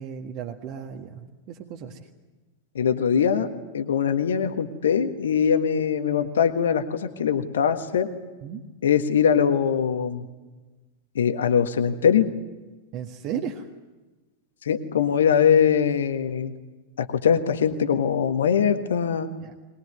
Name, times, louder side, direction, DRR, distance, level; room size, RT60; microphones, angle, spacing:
voice 1, 0.0-2.1 8.4-8.6 12.9-13.7 19.4-19.5, right 8 dB, 40° right, 3 dB, 1.7 m, -35 dB
voice 2, 2.7-3.5 3.7-8.1 8.8-10.2 11.1-12.3 14.7-16.5 17.0-19.3, left 7 dB, 65° left, 7 dB, 1.6 m, -22 dB
22.5 x 21.0 x 9.5 m, 1.2 s
figure-of-eight pair, 90°, 0 cm